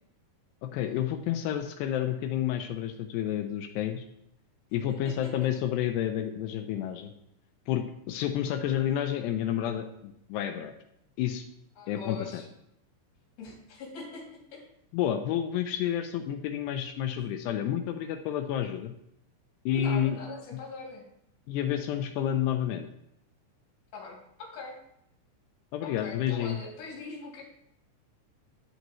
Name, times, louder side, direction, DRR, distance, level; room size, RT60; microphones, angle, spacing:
voice 1, 0.6-4.0 4.7-7.1 7.7-10.7 11.2-11.5 11.9-12.4 14.9-18.9 19.7-20.2 21.5-22.9 25.7-26.6, left 10 dB, 80° left, 7 dB, 2.5 m, -30 dB
voice 2, 11.8-12.5 13.4-14.3 14.5-14.6 19.7-21.1 23.9-24.8 25.8-27.4, left 4 dB, 55° left, -2 dB, 4.1 m, -42 dB
11.0 x 7.9 x 3.1 m, 0.77 s
omnidirectional pair, 5.4 m